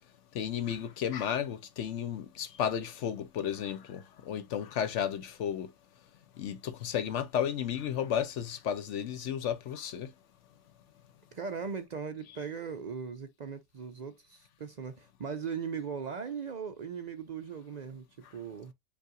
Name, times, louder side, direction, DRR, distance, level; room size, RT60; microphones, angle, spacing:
voice 1, 0.3-5.7 6.4-10.1, left 9 dB, 75° left, 0.9 m, -33 dB
voice 2, 11.3-18.1 18.3-18.7, right 6 dB, 55° right, 0.5 m, -39 dB
5.4 x 2.4 x 3.7 m
omnidirectional pair, 1.3 m